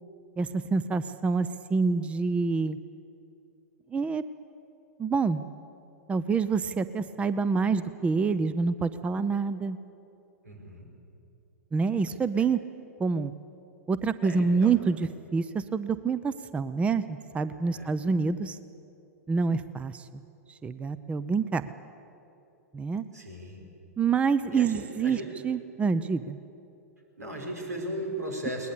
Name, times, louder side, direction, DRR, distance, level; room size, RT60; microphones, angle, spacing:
voice 1, 0.4-2.8 3.9-4.2 5.0-5.4 6.1-9.8 11.7-12.6 13.0-13.3 13.9-18.6 19.3-20.2 20.6-21.6 22.7-23.0 24.0-26.4, right 5 dB, 15° right, 14 dB, 0.6 m, -27 dB
voice 2, 10.4-10.9 14.2-14.8 17.7-17.9 23.1-23.6 24.5-25.3 27.2-28.7, right 1 dB, 85° right, 1 dB, 5.4 m, -37 dB
21.5 x 20.0 x 8.4 m, 2.8 s
hypercardioid pair, 110°, 9 cm